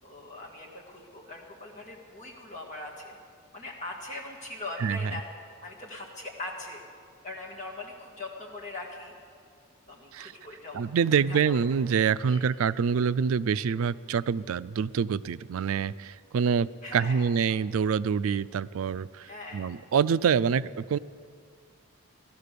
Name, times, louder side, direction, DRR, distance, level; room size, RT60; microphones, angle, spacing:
voice 1, 0.0-3.2 3.5-5.2 5.6-6.8 7.2-9.1 9.9-10.9 11.3-11.6 12.3-12.4 16.8-17.3 19.2-19.7, left 2 dB, 35° left, -2 dB, 2.2 m, -41 dB
voice 2, 4.8-5.2 10.1-10.3 10.7-21.0, right 6 dB, 75° right, 17 dB, 0.4 m, -26 dB
16.5 x 12.0 x 6.8 m, 2.2 s
head